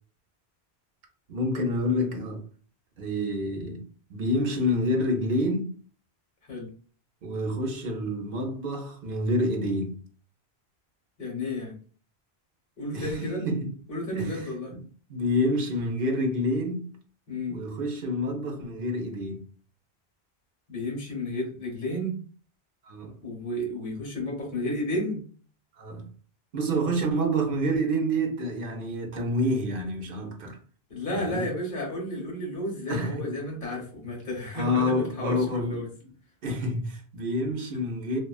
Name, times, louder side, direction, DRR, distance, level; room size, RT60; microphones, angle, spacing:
voice 1, 1.3-2.4 3.0-3.8 4.1-5.7 7.2-10.0 12.9-13.7 14.1-16.9 17.5-19.4 22.9-23.1 25.8-26.0 26.5-30.6 31.1-31.4 32.9-33.1 34.5-35.8 36.4-38.2, equal, 60° right, 0.8 m, -28 dB
voice 2, 11.2-11.8 12.8-13.4 13.9-14.7 17.3-17.6 20.7-22.2 23.2-25.2 30.9-35.9, left 1 dB, 60° left, 1.2 m, -32 dB
2.8 x 2.3 x 2.2 m
omnidirectional pair, 1.1 m